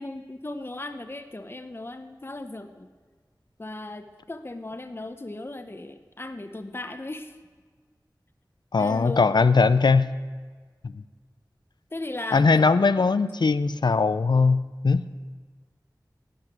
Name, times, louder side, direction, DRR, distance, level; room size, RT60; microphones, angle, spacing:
voice 1, 0.0-2.9 3.6-7.4 8.8-9.4 11.9-12.7, left 2 dB, 30° left, 8 dB, 0.8 m, -36 dB
voice 2, 8.7-10.1 10.8-11.0 12.3-15.1, left 4 dB, 75° left, 13 dB, 0.5 m, -20 dB
12.0 x 7.9 x 9.0 m, 1.5 s
wide cardioid pair, 60°, 7 cm